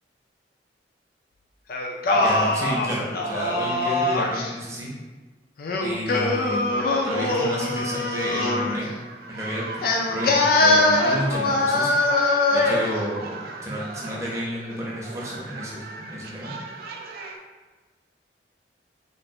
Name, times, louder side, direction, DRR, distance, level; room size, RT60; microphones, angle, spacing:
Singing, 1.7-4.5 5.6-8.8 9.8-12.9, left 2 dB, 55° left, 0.4 m, -22 dB
voice 1, 2.1-4.9 5.8-8.9 9.3-11.9 12.5-16.5, equal, 15° right, -5 dB, 0.6 m, -31 dB
sound 1, 6.8-17.4, right 3 dB, 55° right, 0.3 m, -37 dB
3.1 x 2.4 x 2.6 m, 1.3 s
head